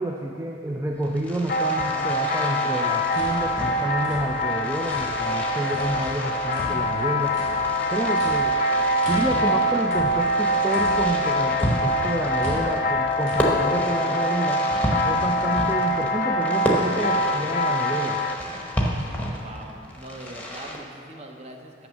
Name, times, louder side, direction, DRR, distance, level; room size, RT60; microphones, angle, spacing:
voice 1, 0.0-7.4 7.9-8.6 9.1-14.6 15.0-18.2, right 1 dB, 15° right, 0 dB, 0.3 m, -29 dB
Fireworks, 0.9-20.8, equal, 10° left, 0.8 m, -32 dB
sound 1, 1.5-18.3, left 1 dB, 50° left, 0.6 m, -24 dB
sound 2, 3.1-5.4 5.7-11.3 11.6-13.5, equal, 85° right, 2.1 m, -41 dB
voice 2, 19.4-21.9, right 1 dB, 35° right, 3 dB, 0.7 m, -42 dB
6.1 x 6.0 x 7.3 m, 2.6 s
head